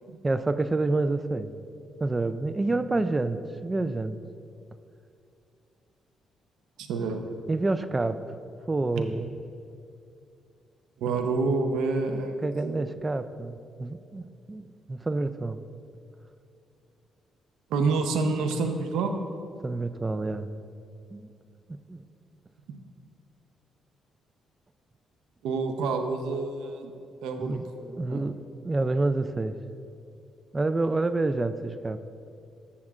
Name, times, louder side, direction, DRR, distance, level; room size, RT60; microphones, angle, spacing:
voice 1, 0.2-1.5 2.0-4.2 7.5-8.2 8.7-9.3 12.4-15.6 19.6-20.5 21.1-21.3 21.9-22.0 27.4-28.4 28.6-29.6 30.5-32.0, right 2 dB, 20° right, 12 dB, 0.3 m, -28 dB
voice 2, 6.8-7.2 11.0-12.9 17.7-19.1 25.4-26.9 27.2-27.6 28.1-28.2, right 4 dB, 90° right, 5 dB, 0.7 m, -28 dB
14.0 x 7.1 x 2.4 m, 2.5 s
cardioid pair, 90°, 0 cm